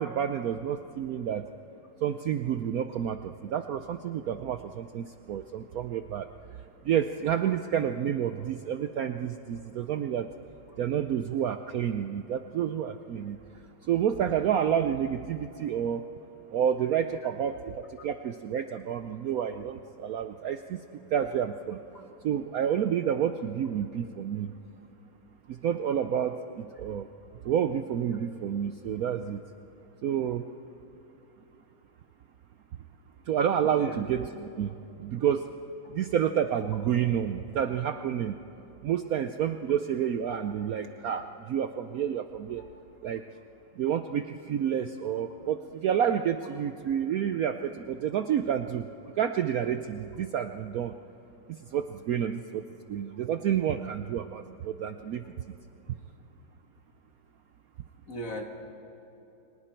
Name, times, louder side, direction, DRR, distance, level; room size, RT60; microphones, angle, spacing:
voice 1, 0.0-1.5 2.0-6.3 6.8-10.3 10.8-13.4 13.9-16.0 16.5-20.8 21.1-21.8 22.2-24.5 25.5-27.1 27.4-29.4 30.0-30.5 33.3-35.5 35.9-38.4 38.8-42.6 43.0-43.2 43.8-48.9 49.2-51.0 51.5-55.2, right 9 dB, 90° right, 8 dB, 0.7 m, -29 dB
voice 2, 58.1-58.4, equal, 40° left, 2 dB, 2.4 m, -39 dB
30.0 x 24.0 x 4.5 m, 3.0 s
omnidirectional pair, 2.3 m